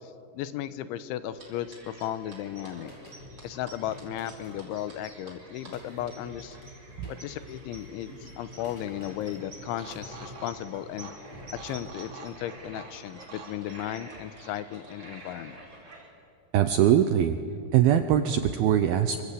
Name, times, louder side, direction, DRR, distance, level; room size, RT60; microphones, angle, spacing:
voice 1, 0.0-2.9 3.4-6.6 7.1-11.1 11.6-15.6, left 11 dB, 90° left, 13 dB, 3.3 m, -35 dB
sound 1, 1.4-16.1, right 2 dB, 20° right, 4.3 m, -50 dB
sound 2, 2.6-12.5, left 1 dB, 30° left, 6.0 m, -49 dB
sound 3, 7.4-15.5, right 4 dB, 45° right, 4.0 m, -50 dB
voice 2, 16.5-17.4 17.7-19.2, right 10 dB, 80° right, 8 dB, 2.2 m, -22 dB
27.5 x 24.5 x 8.5 m, 2.6 s
omnidirectional pair, 5.3 m